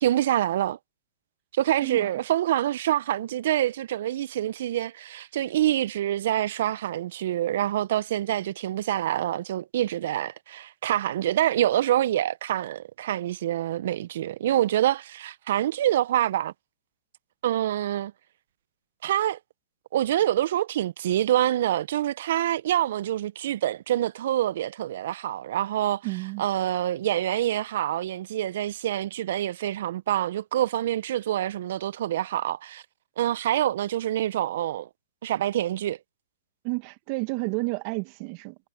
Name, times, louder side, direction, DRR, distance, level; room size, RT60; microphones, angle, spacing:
voice 1, 0.0-0.8 1.5-16.5 17.4-18.1 19.0-19.4 19.9-26.0 26.4-32.8 33.2-34.9 35.2-36.0, right 12 dB, 60° right, 0.9 m, -26 dB
voice 2, 1.8-2.2 26.0-26.4 36.6-38.6, right 28 dB, 45° right, 1.9 m, -31 dB
hypercardioid pair, 120°, 0 cm